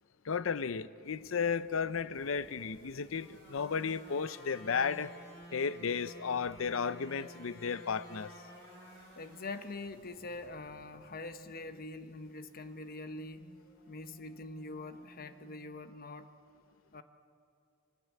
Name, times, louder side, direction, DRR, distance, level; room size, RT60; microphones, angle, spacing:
voice 1, 0.2-5.1 5.5-8.3, left 6 dB, 80° left, 0.6 m, -34 dB
sound 1, 1.0-15.5, equal, 65° left, 5.9 m, -55 dB
voice 2, 9.2-13.6 13.9-16.3 16.9-17.0, left 2 dB, 45° left, 1.0 m, -44 dB
23.0 x 19.5 x 8.4 m
head